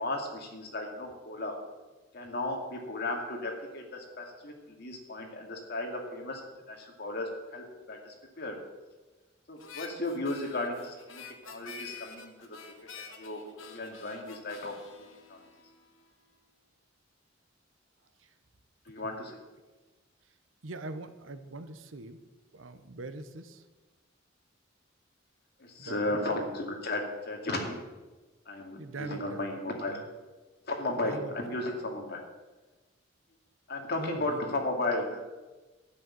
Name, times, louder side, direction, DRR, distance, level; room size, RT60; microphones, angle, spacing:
voice 1, 0.0-1.6 2.1-6.4 6.7-8.6 9.5-12.6 13.0-15.4 18.9-19.4 25.6-27.8 28.5-30.0 30.7-32.2 33.7-35.2, left 2 dB, 55° left, 1 dB, 2.4 m, -35 dB
Harmonica, 9.6-16.1, left 5 dB, 85° left, 1.5 m, -48 dB
voice 2, 20.6-22.2 22.5-23.6 25.8-26.2 28.8-29.6 29.8-30.0 31.0-31.4 34.0-34.6, right 2 dB, 85° right, 11 dB, 1.0 m, -42 dB
11.5 x 6.5 x 9.0 m, 1.2 s
head